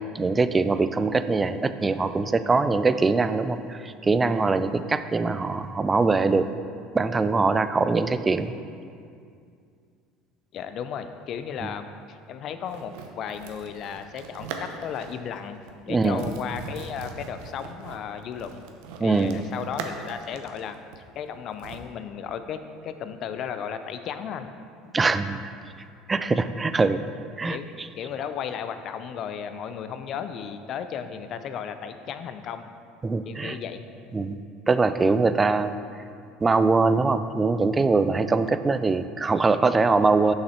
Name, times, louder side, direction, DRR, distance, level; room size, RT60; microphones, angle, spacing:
voice 1, 0.1-6.5 6.9-8.5 11.6-11.7 15.9-16.2 19.0-19.4 24.9-25.5 26.1-27.0 27.4-27.9 33.0-33.6 34.1-34.4 34.7-35.7 36.4-40.3, right 3 dB, 20° right, 12 dB, 0.4 m, -22 dB
voice 2, 10.5-18.6 19.0-24.5 27.5-32.7 33.3-33.9, left 7 dB, 55° left, 9 dB, 0.5 m, -35 dB
sound 1, 12.7-15.3 15.5-15.7 16.0-21.8, right 5 dB, 75° right, 0.7 m, -40 dB
6.7 x 5.7 x 4.3 m, 2.3 s
hypercardioid pair, 80°, 0 cm